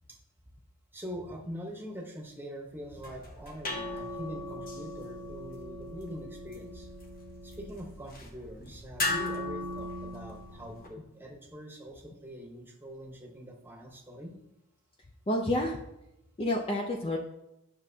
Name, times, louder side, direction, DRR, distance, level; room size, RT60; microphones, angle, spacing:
voice 1, 0.9-6.9 7.4-14.3, equal, 10° right, 0 dB, 1.0 m, -43 dB
sound 1, 2.8-10.9, left 2 dB, 40° left, 1.1 m, -38 dB
voice 2, 15.3-15.8 16.4-17.2, left 1 dB, 25° left, 1 dB, 0.5 m, -29 dB
9.7 x 6.1 x 2.8 m, 0.86 s
head